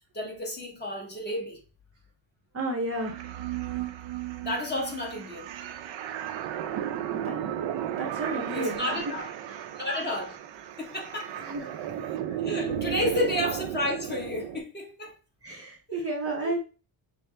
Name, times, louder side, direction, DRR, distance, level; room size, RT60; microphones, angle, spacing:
voice 1, 0.1-1.6 4.4-5.5 8.5-9.3 9.7-10.4 10.8-11.4 12.3-15.2 16.4-16.5, left 1 dB, 20° left, 1.1 m, -31 dB
voice 2, 2.5-3.2 7.1-7.4 7.9-9.0 9.5-9.8 11.4-11.9 15.4-16.6, right 2 dB, 30° right, 0.7 m, -32 dB
sound 1, 2.9-14.6, right 10 dB, 65° right, 0.6 m, -34 dB
5.6 x 2.1 x 3.3 m
cardioid pair, 145°, 49 cm